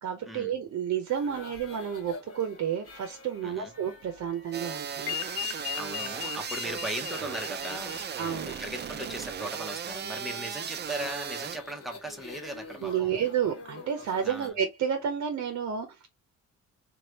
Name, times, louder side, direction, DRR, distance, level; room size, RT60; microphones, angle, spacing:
voice 1, 0.0-5.2 8.2-8.5 12.8-16.1, right 8 dB, 60° right, 0.8 m, -31 dB
sound 1, 1.1-14.5, left 3 dB, 50° left, 1.5 m, -49 dB
sound 2, 4.5-11.6, right 8 dB, 35° right, 0.4 m, -36 dB
sound 3, 5.1-9.2, left 17 dB, 85° left, 0.5 m, -38 dB
voice 2, 5.7-8.1 8.5-13.3 14.2-14.5, right 1 dB, ahead, 0.9 m, -38 dB
3.2 x 2.4 x 2.8 m
cardioid pair, 90°, 30 cm